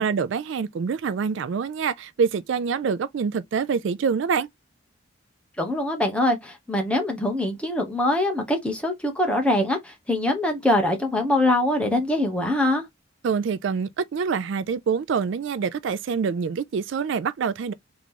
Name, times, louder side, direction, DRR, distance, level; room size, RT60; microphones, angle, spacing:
voice 1, 0.0-4.5 13.2-17.7, right 6 dB, 65° right, 0.3 m, -26 dB
voice 2, 5.6-12.8, left 1 dB, 5° left, 1.0 m, -23 dB
3.7 x 2.9 x 3.7 m
head